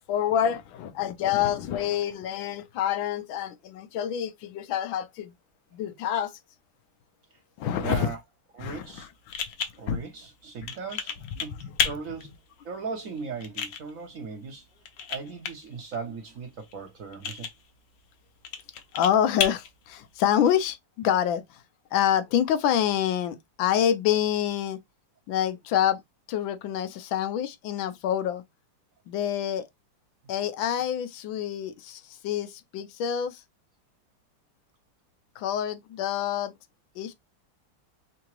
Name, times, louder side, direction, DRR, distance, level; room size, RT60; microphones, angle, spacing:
voice 1, 0.1-5.3 5.7-6.3 7.6-8.1 8.6-9.1 9.9-10.0 11.6-11.7 18.9-21.6 21.9-24.8 25.3-26.0 26.3-28.4 29.1-29.7 30.3-33.4 35.4-36.5 37.0-37.1, left 10 dB, 85° left, 1.4 m, -27 dB
voice 2, 7.8-8.2 8.5-9.1 9.8-12.3 12.6-14.7 15.1-17.5, right 5 dB, 60° right, 0.9 m, -38 dB
sound 1, 8.7-20.7, left 7 dB, 70° left, 1.4 m, -35 dB
3.8 x 3.4 x 3.0 m
omnidirectional pair, 2.1 m